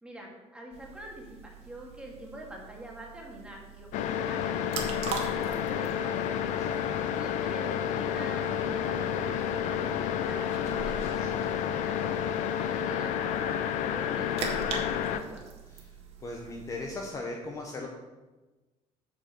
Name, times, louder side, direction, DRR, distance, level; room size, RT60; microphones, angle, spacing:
voice 1, 0.0-6.1 7.0-11.0 11.7-15.4, right 1 dB, 10° right, -2 dB, 2.1 m, -45 dB
sound 1, 0.7-17.1, right 4 dB, 55° right, 1.7 m, -43 dB
sound 2, 3.9-15.2, left 9 dB, 80° left, 0.7 m, -30 dB
voice 2, 16.2-17.9, left 2 dB, 25° left, 1 dB, 1.0 m, -38 dB
8.2 x 6.5 x 6.8 m, 1.2 s
cardioid pair, 180°, 13 cm